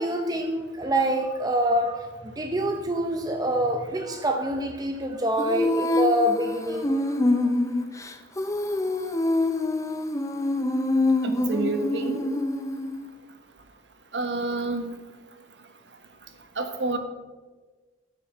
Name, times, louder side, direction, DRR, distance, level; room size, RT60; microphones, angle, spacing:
voice 1, 0.0-7.5, right 1 dB, 20° right, 4 dB, 0.7 m, -26 dB
Female singing, 5.4-13.1, left 2 dB, 15° left, 0.7 m, -25 dB
voice 2, 11.2-12.2 14.1-14.9 16.6-17.0, right 2 dB, 70° right, 6 dB, 1.4 m, -28 dB
12.5 x 6.1 x 6.7 m, 1.3 s
head